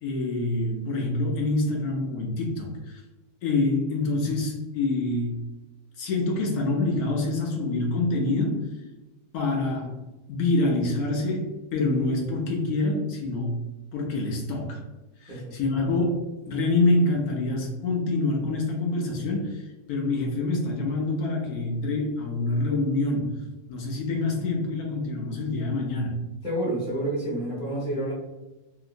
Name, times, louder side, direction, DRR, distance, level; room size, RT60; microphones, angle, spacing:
voice 1, 0.0-3.0 3.4-5.4 6.0-8.7 9.3-10.0 10.3-13.6 13.9-14.8 15.2-23.4 23.7-26.2, left 2 dB, 75° left, 0 dB, 1.1 m, -26 dB
voice 2, 26.4-28.1, right 1 dB, 5° right, -5 dB, 1.1 m, -29 dB
2.9 x 2.8 x 2.5 m, 1.1 s
omnidirectional pair, 1.7 m